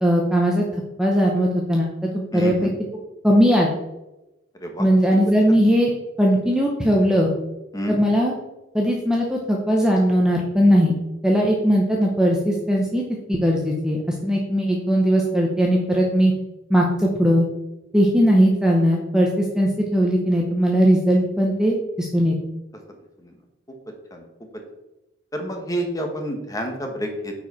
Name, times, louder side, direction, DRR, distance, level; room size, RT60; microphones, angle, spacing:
voice 1, 0.0-1.9 2.1-2.7 3.2-3.7 4.8-5.9 6.2-7.3 7.9-8.3 8.7-11.0 11.2-13.0 13.3-16.3 16.7-17.5 17.9-22.4, equal, 5° right, -1 dB, 0.8 m, -19 dB
voice 2, 2.3-2.7 4.6-4.8 7.7-8.0 24.1-24.2 25.3-27.3, equal, 15° left, 3 dB, 1.2 m, -28 dB
9.2 x 4.7 x 4.1 m, 0.98 s
head